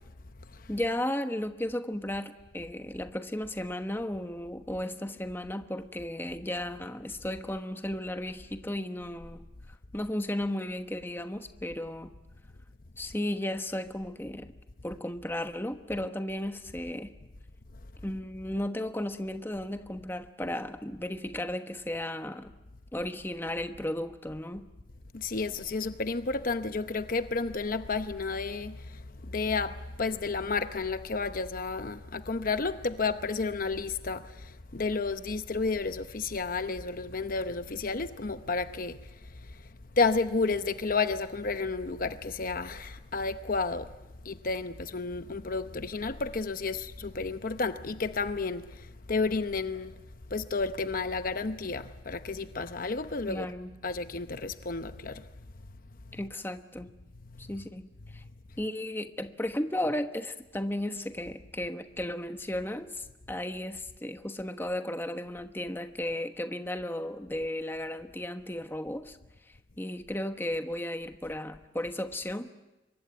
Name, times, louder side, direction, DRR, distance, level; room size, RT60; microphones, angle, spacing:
voice 1, 0.7-9.5 9.9-12.1 13.0-14.5 14.8-17.1 18.0-22.5 22.9-24.6 53.3-53.8 56.1-56.9 57.4-58.2 58.6-69.2 69.8-72.5, left 1 dB, 10° left, 1.2 m, -34 dB
voice 2, 25.1-39.0 39.9-43.9 44.2-50.0 50.3-53.5 53.8-55.3 56.1-56.3, left 4 dB, 50° left, 0.8 m, -31 dB
26.0 x 23.0 x 9.3 m
head